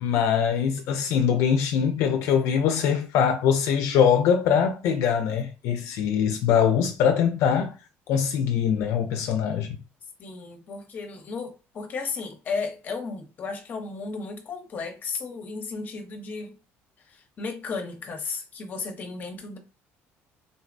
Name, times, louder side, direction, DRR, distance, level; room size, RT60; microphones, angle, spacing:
voice 1, 0.0-7.7 8.1-9.8, left 7 dB, 70° left, 0.4 m, -23 dB
voice 2, 10.2-16.5 17.0-19.6, left 4 dB, 35° left, 0.7 m, -34 dB
3.7 x 2.0 x 2.5 m
cardioid pair, 150°, 5 cm